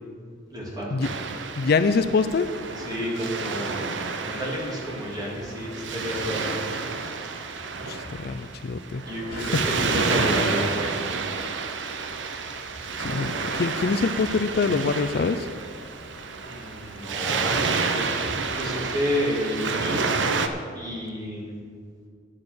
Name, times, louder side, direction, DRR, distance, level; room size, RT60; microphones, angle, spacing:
voice 1, 0.5-1.1 2.8-3.8 4.2-6.5 9.1-11.0 16.4-20.0 20.4-21.5, equal, 20° right, -4 dB, 2.9 m, -30 dB
Waves surf, 1.0-20.5, right 4 dB, 70° right, 0.8 m, -30 dB
voice 2, 1.6-2.5 7.9-9.0 9.3-9.5 12.4-12.6 13.0-15.5, left 4 dB, 55° left, 10 dB, 0.4 m, -25 dB
10.0 x 8.7 x 6.6 m, 2.1 s
head